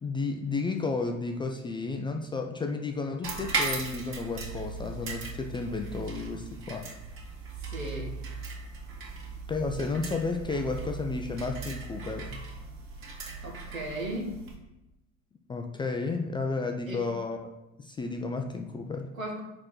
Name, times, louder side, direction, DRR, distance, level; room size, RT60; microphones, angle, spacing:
voice 1, 0.0-6.9 9.5-12.4 15.5-17.4 17.8-19.1, left 3 dB, 10° left, 3 dB, 0.4 m, -32 dB
sound 1, 3.2-14.6, right 3 dB, 30° right, 1.9 m, -37 dB
voice 2, 7.7-8.2 13.4-14.4 16.9-17.1 19.1-19.4, right 1 dB, 80° right, -2 dB, 1.8 m, -36 dB
5.3 x 4.3 x 6.0 m, 0.93 s
figure-of-eight pair, 70°, 41 cm